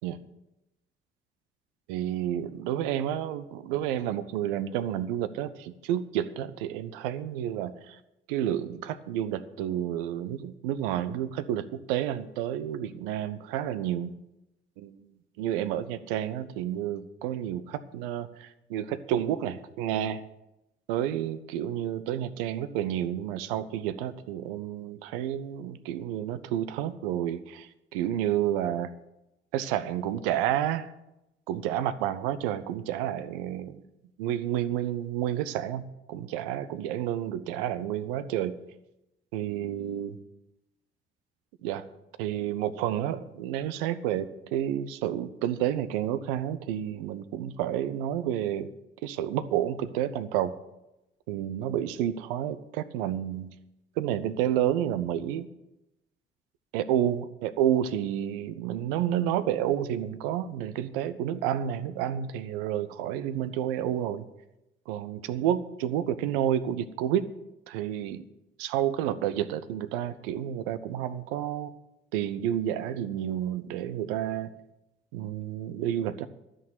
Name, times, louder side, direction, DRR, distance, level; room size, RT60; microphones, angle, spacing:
voice 1, 1.9-8.0 8.3-14.2 14.8-14.9 15.4-20.2 20.9-28.9 29.5-30.9 31.5-33.8 34.2-38.7 39.3-40.2 41.6-41.9 42.2-48.7 49.0-50.5 51.3-53.5 54.0-55.5 56.7-64.2 64.9-67.3 67.7-68.2 68.6-71.7 72.1-74.5 75.1-76.3, right 11 dB, 65° right, 15 dB, 0.8 m, -30 dB
13.0 x 6.3 x 9.2 m, 0.92 s
figure-of-eight pair, 45°, 29 cm